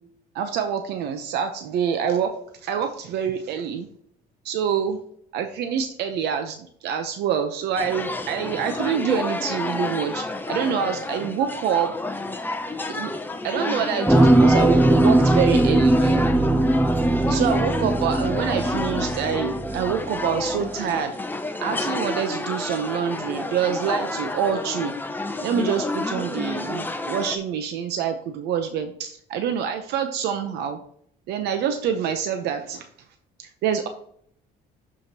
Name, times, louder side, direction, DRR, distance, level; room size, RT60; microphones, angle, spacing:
voice 1, 0.3-2.3 2.6-3.9 4.4-5.0 5.3-11.9 12.9-13.1 13.4-16.3 17.3-21.1 21.6-24.9 25.4-30.8 31.3-32.9 33.4-33.9, right 8 dB, 75° right, 7 dB, 0.7 m, -26 dB
sound 1, 7.8-27.4, left 2 dB, 10° left, 0.8 m, -30 dB
sound 2, 14.1-20.1 20.5-20.6, right 1 dB, 5° right, 0.4 m, -19 dB
11.5 x 5.0 x 2.8 m, 0.65 s
cardioid pair, 110°, 17 cm